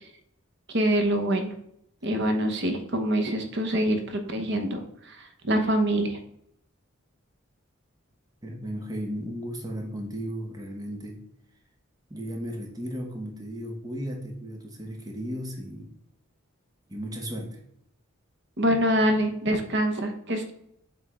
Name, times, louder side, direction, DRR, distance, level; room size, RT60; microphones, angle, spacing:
voice 1, 0.7-1.5 2.0-6.2 18.6-20.5, right 1 dB, 55° right, 6 dB, 1.0 m, -25 dB
voice 2, 8.4-11.2 12.1-15.9 16.9-17.6, equal, 20° right, 2 dB, 1.0 m, -35 dB
7.8 x 3.6 x 3.6 m, 0.73 s
head